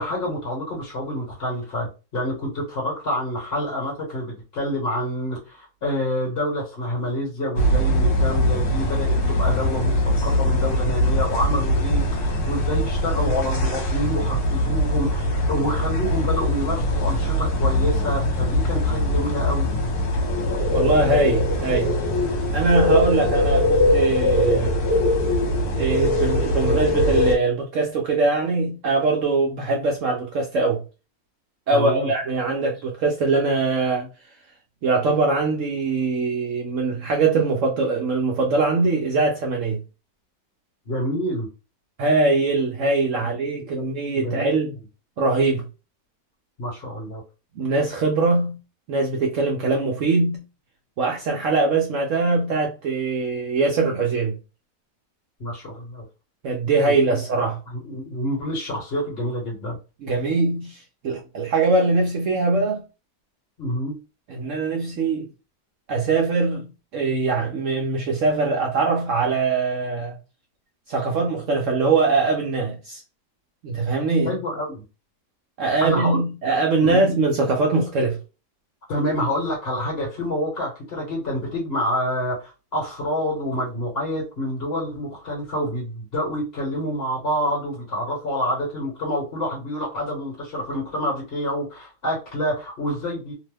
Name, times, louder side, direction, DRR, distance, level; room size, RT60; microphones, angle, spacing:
voice 1, 0.0-19.8 31.7-32.1 40.8-41.5 43.2-43.3 43.6-43.8 44.1-44.5 46.6-47.2 55.4-56.0 56.9-57.0 57.4-59.7 63.6-64.0 74.2-74.8 75.8-76.2 76.8-77.1 78.9-93.3, equal, 40° left, 1.1 m, -27 dB
sound 1, 7.6-27.4, left 1 dB, 65° left, 1.3 m, -21 dB
voice 2, 20.7-22.0 22.5-24.7 25.7-30.8 31.7-34.1 34.8-39.8 42.0-44.8 45.2-45.7 47.6-48.6 48.9-50.4 51.0-54.4 56.4-57.6 60.0-62.8 64.3-65.3 65.9-66.7 66.9-70.1 70.9-73.0 73.6-74.3 75.6-78.2, right 3 dB, 65° right, 0.8 m, -22 dB
2.9 x 2.1 x 3.3 m
omnidirectional pair, 1.8 m